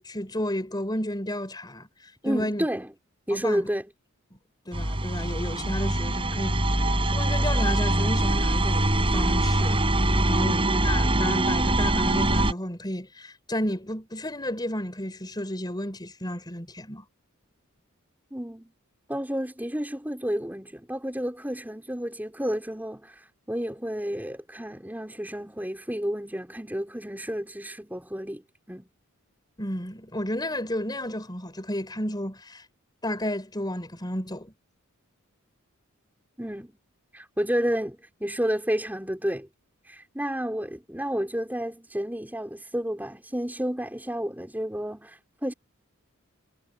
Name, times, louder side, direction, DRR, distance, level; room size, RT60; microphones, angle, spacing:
voice 1, 0.0-2.7 3.3-3.6 4.7-9.8 10.2-17.0 29.6-32.6 33.0-34.5, left 1 dB, 20° left, 5.2 m, -32 dB
voice 2, 2.2-2.9 3.3-3.9 10.3-10.6 18.3-18.7 19.1-23.2 23.5-28.9 36.4-36.8 37.1-39.5 39.9-45.5, equal, 10° right, 5.4 m, -31 dB
sound 1, 4.7-12.5, right 1 dB, 25° right, 5.6 m, -23 dB
head